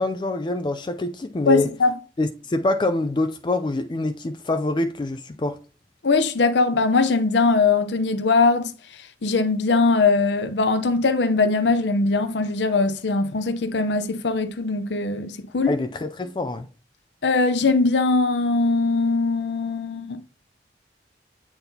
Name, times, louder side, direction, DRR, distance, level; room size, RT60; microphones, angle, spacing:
voice 1, 0.0-1.7 2.2-5.6 15.7-16.7, left 2 dB, 25° left, 0.3 m, -25 dB
voice 2, 1.5-1.9 6.0-15.8 17.2-20.2, left 3 dB, 75° left, 0.6 m, -21 dB
8.7 x 3.9 x 2.7 m
head